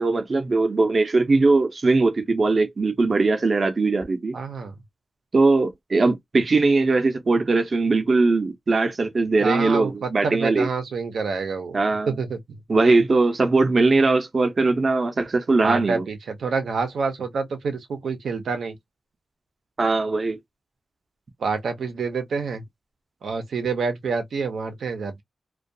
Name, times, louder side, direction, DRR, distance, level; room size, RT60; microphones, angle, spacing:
voice 1, 0.0-4.4 5.3-10.7 11.7-12.2 12.7-16.0 19.8-20.4, right 3 dB, 40° right, 0.5 m, -20 dB
voice 2, 4.3-4.7 9.4-11.8 12.1-12.4 15.6-18.7 21.4-22.6 23.2-25.2, right 5 dB, 90° right, 0.6 m, -27 dB
2.2 x 2.2 x 2.6 m
wide cardioid pair, 160°, 0 cm